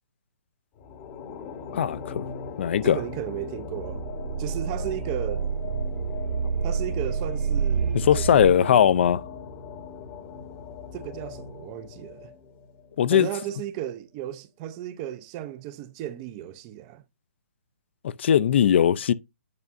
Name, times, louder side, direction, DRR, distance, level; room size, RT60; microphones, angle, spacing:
sound 1, 0.8-13.3, left 5 dB, 25° left, 0.9 m, -39 dB
voice 1, 1.7-2.2 2.6-3.0 7.9-9.2 13.0-13.3 18.0-19.1, left 9 dB, 50° left, 0.4 m, -20 dB
voice 2, 2.8-4.0 4.4-5.5 6.6-8.8 10.9-12.3 13.1-17.0, right 12 dB, 25° right, 0.5 m, -35 dB
sound 2, 3.5-8.5, right 7 dB, 80° right, 2.0 m, -28 dB
9.6 x 5.3 x 2.5 m
hypercardioid pair, 150°, 8 cm